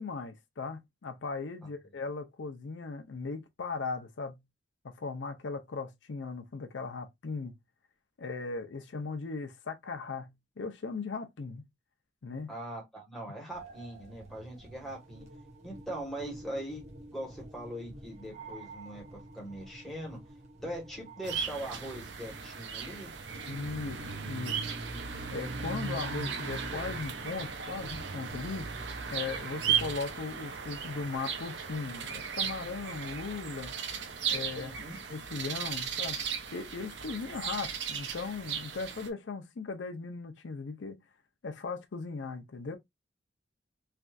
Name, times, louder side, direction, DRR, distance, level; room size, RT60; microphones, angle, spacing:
voice 1, 0.0-4.4 4.8-7.5 8.2-11.6 12.2-12.5 23.5-24.6 24.9-25.0 25.3-28.7 29.1-33.7 34.3-36.2 36.5-41.0 41.4-42.8, left 4 dB, 90° left, 0.6 m, -38 dB
voice 2, 12.5-15.2 15.6-20.2 20.6-23.1 34.5-35.0, right 1 dB, ahead, 1.2 m, -41 dB
sound 1, 13.5-28.3, right 2 dB, 35° right, 1.0 m, -50 dB
sound 2, 21.2-39.1, right 6 dB, 75° right, 0.6 m, -36 dB
3.3 x 2.6 x 2.3 m
head